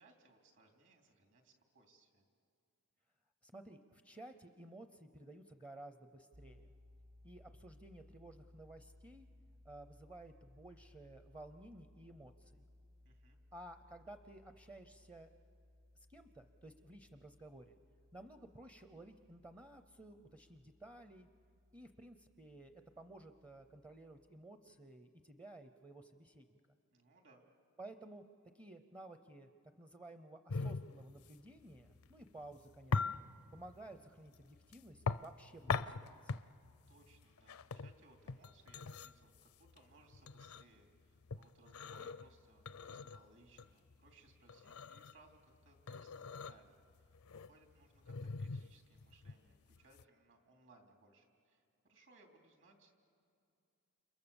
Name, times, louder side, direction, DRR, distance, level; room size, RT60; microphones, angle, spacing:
voice 1, 0.0-2.3 13.0-13.4 26.9-27.5 36.9-52.9, right 2 dB, 60° right, 3 dB, 3.3 m, -66 dB
voice 2, 3.4-6.7 7.2-9.3 9.6-12.6 13.5-15.3 15.9-17.8 18.1-21.3 21.7-26.6 27.8-28.3 28.5-29.5 29.8-33.3 33.5-36.3, right 1 dB, 20° right, 9 dB, 0.7 m, -55 dB
sound 1, 6.3-24.3, left 1 dB, 40° right, 1.4 m, -64 dB
sound 2, 30.5-50.0, left 4 dB, 65° left, 0.6 m, -42 dB
30.0 x 28.0 x 7.1 m, 2.5 s
head